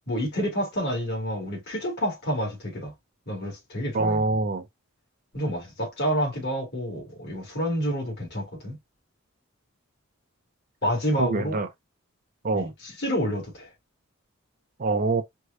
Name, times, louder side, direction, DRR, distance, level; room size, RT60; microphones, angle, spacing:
voice 1, 0.1-2.9 3.3-4.2 5.3-8.8 10.8-11.6 12.5-13.7, equal, 55° left, 2.2 m, -28 dB
voice 2, 3.9-4.6 11.2-11.7 12.4-12.7 14.8-15.2, right 3 dB, 40° right, 0.6 m, -24 dB
4.6 x 2.3 x 2.5 m
head